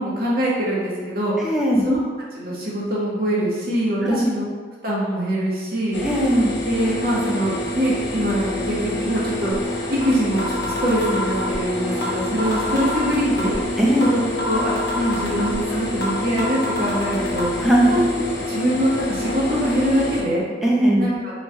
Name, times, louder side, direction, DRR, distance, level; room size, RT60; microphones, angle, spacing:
voice 1, 0.0-1.3 1.8-2.0 2.3-4.5 4.8-6.0 6.6-9.5 9.9-13.5 14.0-17.5 17.9-20.4 21.0-21.3, right 1 dB, 55° right, -6 dB, 0.9 m, -23 dB
voice 2, 1.4-1.8 4.1-4.3 6.0-6.5 13.8-14.1 17.6-18.0 20.6-21.1, equal, ahead, -4 dB, 0.4 m, -18 dB
sound 1, 5.9-20.2, left 1 dB, 90° left, 0.7 m, -27 dB
sound 2, 10.0-10.1 10.4-11.6 12.0-12.1 12.4-13.6 14.0-14.1 14.4-15.6 16.0-16.1 16.4-17.4, left 1 dB, 65° left, 0.8 m, -28 dB
3.0 x 2.3 x 4.1 m, 1.5 s
head